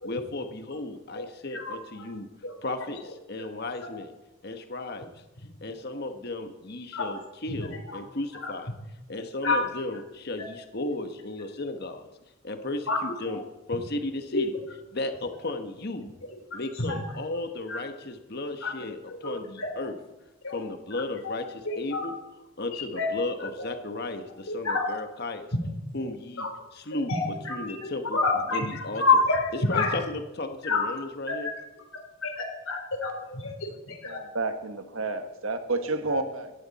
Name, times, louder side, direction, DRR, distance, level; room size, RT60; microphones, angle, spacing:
voice 1, 0.0-2.3 2.6-4.1 4.4-5.1 5.6-8.7 9.1-12.1 12.4-13.4 13.7-14.5 14.9-16.1 16.5-19.9 20.5-22.1 22.6-25.5 25.9-26.5 26.7-27.1 27.5-28.2 28.5-29.0 29.7-31.5, left 2 dB, 50° left, 7 dB, 1.3 m, -34 dB
voice 2, 1.5-2.1 2.4-2.9 3.8-3.9 6.9-7.2 7.6-8.0 8.3-8.5 9.4-9.6 12.9-13.0 13.3-13.4 14.3-14.5 16.5-16.6 16.9-17.0 17.3-17.4 17.7-17.8 18.6-18.7 19.2-19.7 20.4-20.6 21.2-21.4 21.7-22.1 22.7-23.1 23.6-23.7 24.5-24.9 25.5-25.6 26.4-26.5 26.9-28.7 29.0-30.0 30.6-30.9 31.3-31.4 32.2-34.2, left 3 dB, 85° left, 3 dB, 3.5 m, -28 dB
voice 3, 33.7-36.5, right 3 dB, 85° right, 8 dB, 1.5 m, -31 dB
17.5 x 14.0 x 4.2 m, 1.0 s
head